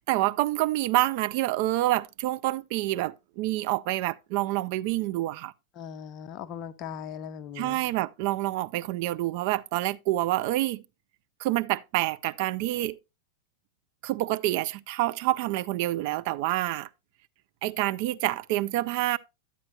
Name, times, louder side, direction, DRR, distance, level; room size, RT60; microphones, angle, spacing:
voice 1, 0.1-5.5 7.5-10.8 11.4-13.0 14.0-16.9 17.6-19.2, right 16 dB, 45° right, 0.4 m, -27 dB
voice 2, 5.8-7.8, left 8 dB, 35° left, 0.5 m, -39 dB
9.6 x 8.5 x 2.7 m
figure-of-eight pair, 90°, 0 cm